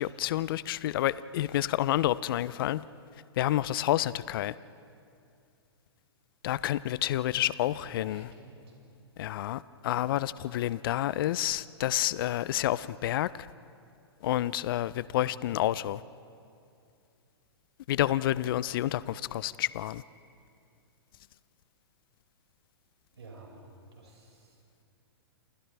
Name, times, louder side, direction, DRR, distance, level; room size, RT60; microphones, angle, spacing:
voice 1, 0.0-2.8 3.4-4.5 6.4-8.3 9.2-13.3 14.2-16.0 17.9-20.0, left 13 dB, 55° left, 18 dB, 0.5 m, -29 dB
voice 2, 7.5-8.8 11.2-11.4 15.1-15.6 23.2-23.5 23.9-24.6, right 3 dB, 85° right, -1 dB, 5.5 m, -51 dB
28.5 x 28.0 x 3.4 m, 2.5 s
hypercardioid pair, 120°, 14 cm